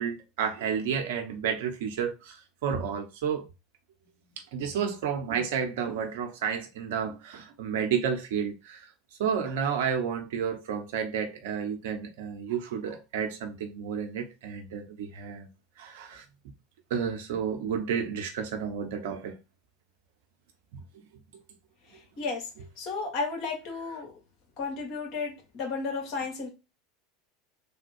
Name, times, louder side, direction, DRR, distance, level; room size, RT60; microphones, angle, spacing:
voice 1, 0.0-3.4 4.5-8.9 9.2-15.5 15.8-16.2 16.9-19.4 20.7-20.8, right 7 dB, 70° right, 0.9 m, -31 dB
voice 2, 22.2-22.5 22.8-24.1 24.6-26.5, left 4 dB, 50° left, 1.8 m, -33 dB
3.5 x 2.2 x 4.4 m
hypercardioid pair, 85°, 0 cm